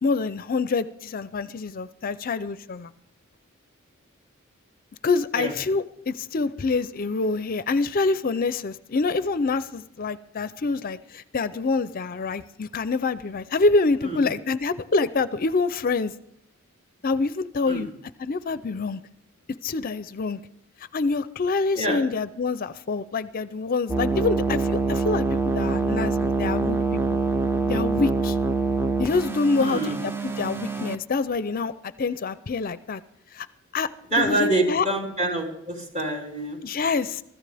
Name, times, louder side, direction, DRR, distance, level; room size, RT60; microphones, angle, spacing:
voice 1, 0.0-2.9 5.0-16.1 17.0-17.9 18.2-19.0 19.6-20.4 20.9-26.8 27.1-27.2 27.6-28.4 29.0-31.7 32.0-33.0 33.3-33.5 33.7-33.9 34.2-34.9 36.6-37.2, left 3 dB, 45° left, 14 dB, 0.5 m, -26 dB
sound 1, 23.9-31.0, right 3 dB, 10° right, 0.6 m, -25 dB
voice 2, 29.6-30.0 34.1-36.7, right 1 dB, 35° right, -1 dB, 3.8 m, -26 dB
24.5 x 14.0 x 3.4 m, 0.78 s
head